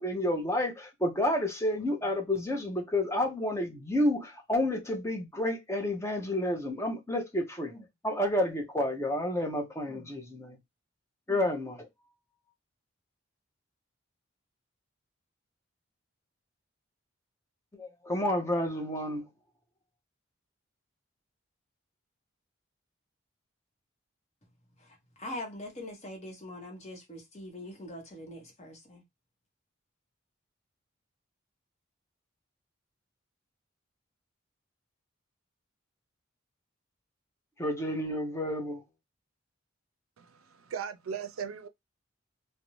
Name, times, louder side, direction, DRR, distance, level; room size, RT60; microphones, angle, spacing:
voice 1, 0.0-10.6 11.3-11.9 17.8-19.3 37.6-38.8, left 1 dB, 15° left, 0.6 m, -30 dB
voice 2, 25.2-29.0, left 1 dB, 35° left, 0.9 m, -42 dB
voice 3, 40.2-41.7, right 7 dB, 90° right, 0.4 m, -38 dB
2.5 x 2.1 x 2.9 m
head